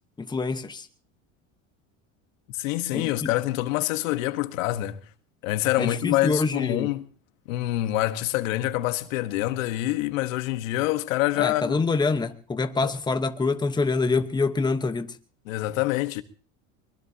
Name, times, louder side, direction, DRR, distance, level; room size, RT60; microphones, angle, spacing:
voice 1, 0.2-0.9 2.9-3.3 5.8-6.9 11.4-15.1, left 4 dB, 10° left, 1.1 m, -26 dB
voice 2, 2.6-5.0 5.4-7.0 7.5-11.8 12.8-12.9 15.5-16.2, left 16 dB, 85° left, 1.4 m, -26 dB
23.5 x 21.0 x 2.8 m
supercardioid pair, 115°, 39 cm